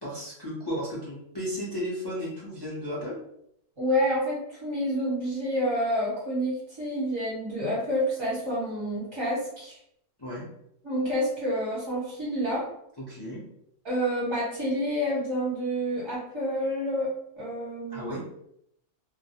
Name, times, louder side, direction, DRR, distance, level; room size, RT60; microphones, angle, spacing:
voice 1, 0.0-3.1 10.2-10.4 13.1-13.4 17.9-18.2, equal, 30° left, -6 dB, 0.5 m, -34 dB
voice 2, 3.8-9.8 10.8-12.7 13.8-18.2, equal, 30° right, -7 dB, 0.6 m, -28 dB
2.3 x 2.0 x 2.8 m, 0.74 s
omnidirectional pair, 1.3 m